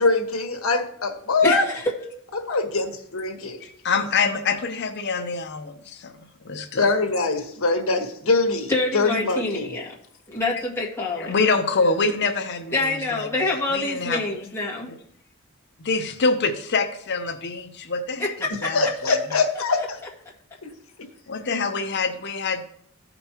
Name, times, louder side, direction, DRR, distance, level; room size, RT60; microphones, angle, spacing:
voice 1, 0.0-1.6 2.3-3.6 6.7-9.8 18.7-20.0 20.6-20.7, left 3 dB, 75° left, 4 dB, 1.4 m, -23 dB
voice 2, 1.4-1.9 8.7-9.9 10.3-11.3 12.7-14.9 18.2-18.7 19.3-19.4, left 2 dB, 10° left, -5 dB, 1.8 m, -26 dB
voice 3, 3.6-6.1 6.4-6.9 11.2-14.2 14.9-15.0 15.8-18.3 18.6-18.9 21.3-22.6, left 4 dB, 55° left, 7 dB, 0.7 m, -25 dB
14.5 x 5.3 x 2.9 m, 0.67 s
head